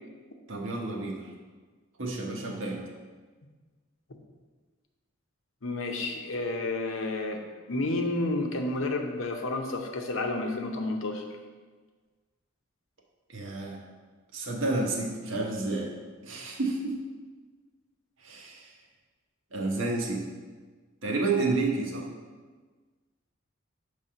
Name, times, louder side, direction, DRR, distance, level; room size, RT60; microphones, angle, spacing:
voice 1, 0.5-1.3 2.0-2.8 13.3-13.8 14.3-15.9 16.2-17.0 18.2-18.7 19.5-20.2 21.0-22.1, right 3 dB, 70° right, -1 dB, 1.1 m, -30 dB
voice 2, 5.6-7.4 7.7-11.2, left 2 dB, 75° left, 3 dB, 0.8 m, -30 dB
6.6 x 3.4 x 5.6 m, 1.4 s
head